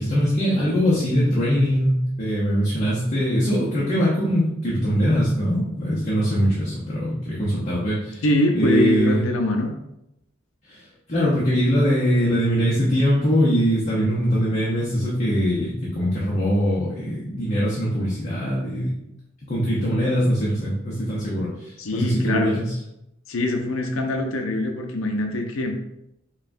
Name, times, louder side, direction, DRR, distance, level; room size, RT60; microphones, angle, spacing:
voice 1, 0.0-8.2 8.5-9.2 10.7-10.8 11.1-18.9 19.4-22.7, equal, 35° left, -7 dB, 0.8 m, -22 dB
voice 2, 8.2-9.7 21.8-22.6 23.3-25.7, left 1 dB, 85° left, 3 dB, 0.6 m, -23 dB
5.4 x 2.3 x 2.6 m, 0.84 s
head